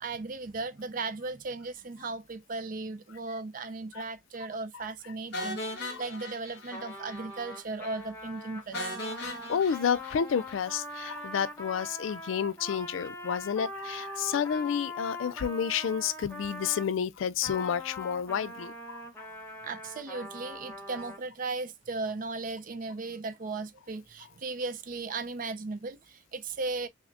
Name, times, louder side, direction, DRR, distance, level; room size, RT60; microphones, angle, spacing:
voice 1, 0.0-8.9 19.6-26.9, right 3 dB, 45° right, 0.4 m, -36 dB
sound 1, 5.3-7.2 7.5-7.6 8.0-8.1 8.7-11.0, left 1 dB, 60° left, 1.5 m, -39 dB
Trumpet, 6.7-16.9 17.4-21.2, left 1 dB, 10° left, 0.9 m, -42 dB
voice 2, 9.2-19.3, left 7 dB, 75° left, 0.4 m, -30 dB
5.8 x 2.1 x 2.5 m
head